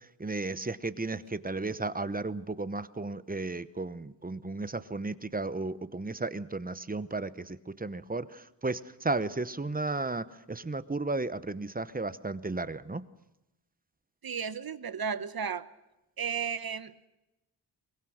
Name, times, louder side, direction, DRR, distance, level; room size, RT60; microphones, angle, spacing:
voice 1, 0.0-13.0, right 3 dB, 20° right, 14 dB, 0.9 m, -34 dB
voice 2, 14.2-15.7 16.2-17.1, right 6 dB, 50° right, 13 dB, 1.1 m, -34 dB
22.5 x 22.5 x 6.4 m, 0.96 s
wide cardioid pair, 120°, 46 cm